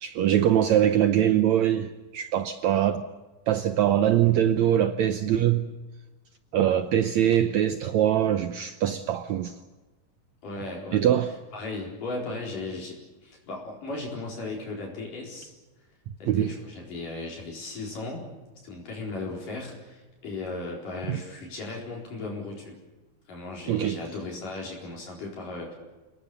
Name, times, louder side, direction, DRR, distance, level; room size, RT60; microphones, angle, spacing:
voice 1, 0.0-3.0 3.5-5.7 6.5-9.5 10.9-11.3 16.3-16.5 21.1-21.2 23.7-24.0, right 11 dB, 80° right, 1.6 m, -23 dB
voice 2, 10.4-11.2 11.5-15.5 16.2-18.3 18.6-22.8 23.3-25.8, left 3 dB, 60° left, 5.8 m, -36 dB
29.5 x 19.5 x 6.9 m
omnidirectional pair, 4.4 m